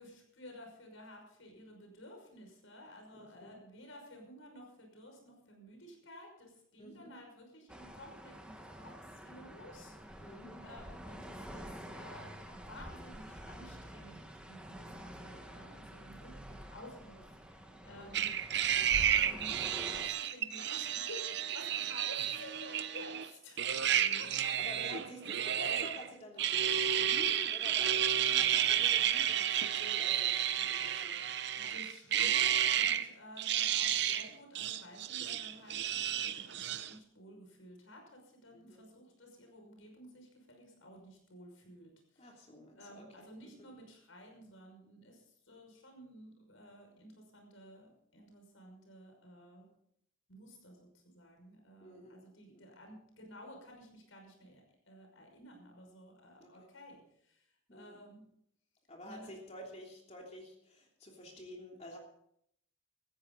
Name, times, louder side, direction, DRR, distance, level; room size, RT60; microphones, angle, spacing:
voice 1, 0.0-10.3 10.6-14.2 14.5-18.3 19.2-23.7 24.0-24.5 28.3-28.7 31.5-42.3 42.8-49.7 50.3-58.3 59.0-59.3, left 1 dB, 85° left, 2 dB, 6.0 m, -53 dB
voice 2, 3.2-3.6 6.8-7.1 10.2-10.6 18.0-18.2 23.8-31.6 38.5-38.8 42.2-43.7 51.8-52.2 52.5-52.8 56.4-56.7 57.7-58.0 58.9-62.0, equal, 35° left, 0 dB, 3.1 m, -50 dB
sound 1, 7.7-20.1, equal, 5° right, 1.5 m, -48 dB
sound 2, 18.1-23.3 23.6-26.1 26.4-33.1 33.4-34.3 34.5-36.9, right 10 dB, 55° right, 0.8 m, -31 dB
17.0 x 14.5 x 4.0 m, 0.73 s
head